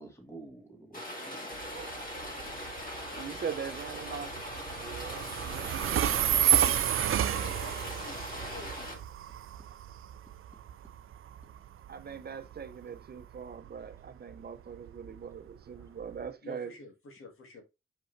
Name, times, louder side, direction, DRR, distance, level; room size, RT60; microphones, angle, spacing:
voice 1, 0.0-1.4 11.3-11.6 15.7-16.0, right 3 dB, 15° left, 2.0 m, -51 dB
Rain, 0.9-8.9, left 1 dB, 40° left, 2.0 m, -41 dB
Train, 1.5-16.3, right 11 dB, 75° right, 0.4 m, -32 dB
voice 2, 3.2-4.4 4.7-5.9 11.9-16.8, right 7 dB, 50° right, 0.7 m, -41 dB
voice 3, 6.5-9.1 16.4-17.6, left 2 dB, 85° left, 2.0 m, -49 dB
6.9 x 5.3 x 3.2 m
wide cardioid pair, 165°, 21 cm